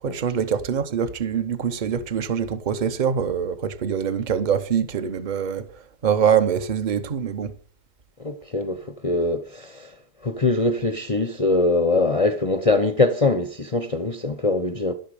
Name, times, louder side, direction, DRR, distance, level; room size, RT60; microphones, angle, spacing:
voice 1, 0.0-5.7 6.0-7.5, right 7 dB, 50° right, 0.5 m, -24 dB
voice 2, 8.2-9.9 10.2-14.9, left 2 dB, 50° left, 0.4 m, -22 dB
11.5 x 11.5 x 4.9 m
omnidirectional pair, 1.9 m